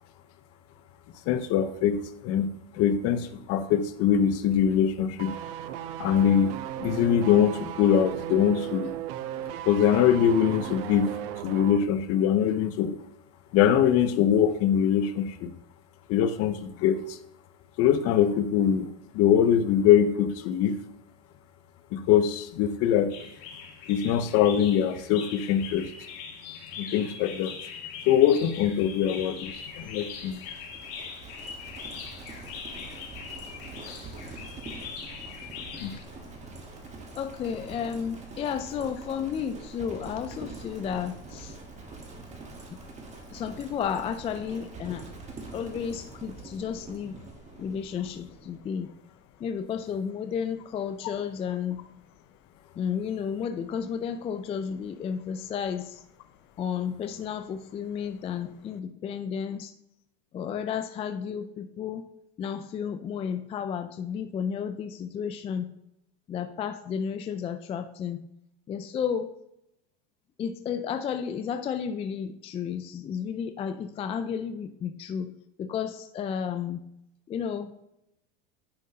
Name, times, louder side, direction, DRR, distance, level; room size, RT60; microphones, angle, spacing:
voice 1, 1.3-2.5 2.7-5.3 6.0-6.5 6.8-8.9 9.7-11.1 11.4-13.0 13.5-15.5 16.1-17.2 17.8-20.8 21.9-23.1 23.9-25.9 26.8-27.5 28.1-30.4 35.8-35.9, left 9 dB, 50° left, 11 dB, 0.7 m, -23 dB
sound 1, 5.2-11.9 12.1-12.3, right 11 dB, 70° right, 0.6 m, -36 dB
sound 2, 23.1-36.0, left 6 dB, 75° left, 1.7 m, -41 dB
Livestock farm animals working animals, 28.9-48.6, right 3 dB, 25° right, 1.4 m, -45 dB
voice 2, 37.2-41.6 42.7-42.8 43.3-45.1 45.5-47.2 47.6-48.9 49.4-51.8 52.8-56.0 56.6-59.7 60.3-62.0 62.4-65.7 66.3-68.3 68.7-69.3 70.4-75.3 75.6-76.8 77.3-77.8, left 7 dB, 20° left, 8 dB, 0.3 m, -32 dB
10.0 x 5.4 x 2.8 m, 0.81 s
supercardioid pair, 115°, 30 cm